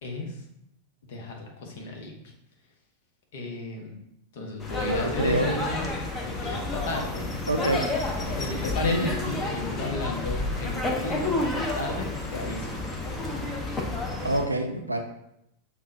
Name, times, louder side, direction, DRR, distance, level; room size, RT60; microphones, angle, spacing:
voice 1, 1.1-2.1 3.3-4.0 4.3-6.0 6.3-7.3 8.3-12.6, left 2 dB, 55° left, 1 dB, 0.9 m, -34 dB
sound 1, 4.6-14.5, left 2 dB, 20° left, 0.7 m, -30 dB
voice 2, 4.8-5.5 7.5-7.9 8.8-9.1 14.2-15.0, right 1 dB, 85° right, 4 dB, 0.4 m, -26 dB
5.4 x 2.2 x 3.8 m, 0.81 s
figure-of-eight pair, 90°, 0 cm